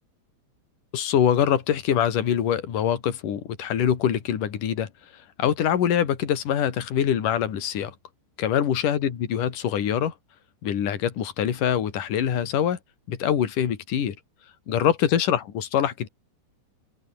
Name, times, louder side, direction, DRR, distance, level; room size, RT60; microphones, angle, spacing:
voice 1, 0.9-4.9 5.4-7.9 8.4-10.1 10.6-12.8 13.1-14.2 14.7-16.1, left 9 dB, 50° left, 3.8 m, -24 dB
open air
omnidirectional pair, 5.3 m